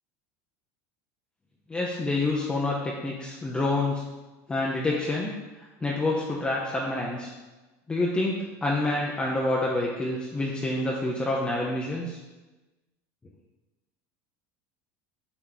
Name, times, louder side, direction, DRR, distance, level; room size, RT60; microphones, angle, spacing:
voice 1, 1.7-4.0 4.5-5.3 5.8-7.3 7.9-12.2, left 2 dB, 15° left, -3 dB, 0.6 m, -27 dB
8.0 x 3.0 x 3.9 m, 1.2 s
supercardioid pair, 140°, 8 cm